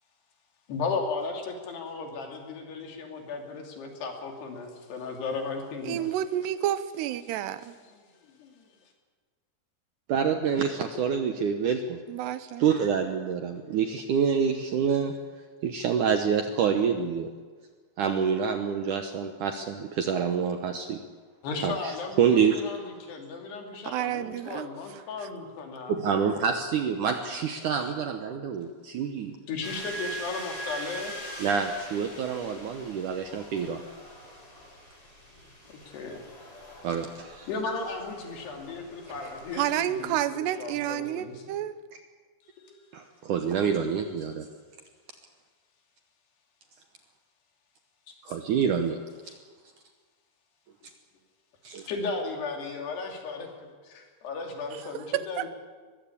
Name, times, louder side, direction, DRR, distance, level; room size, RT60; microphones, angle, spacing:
voice 1, 0.7-6.1 7.9-8.7 21.4-25.9 29.5-31.1 35.8-36.2 36.7-36.8 37.5-41.4 42.5-42.8 48.8-48.9 49.3-49.4 51.9-55.5, left 4 dB, 75° left, 2 dB, 4.9 m, -35 dB
voice 2, 5.8-7.8 12.1-12.7 23.8-24.7 24.9-25.3 39.5-41.8 54.9-55.5, right 12 dB, 90° right, 13 dB, 3.0 m, -30 dB
voice 3, 10.1-12.0 12.6-15.1 15.6-17.3 18.0-21.0 21.6-22.6 25.9-29.3 31.4-33.8 36.8-37.5 42.9-44.5 48.2-49.0 51.7-51.8, right 7 dB, 70° right, 6 dB, 2.0 m, -27 dB
sound 1, 29.6-40.1, right 1 dB, 20° left, 5.4 m, -43 dB
22.0 x 15.0 x 8.6 m, 1.5 s
omnidirectional pair, 4.8 m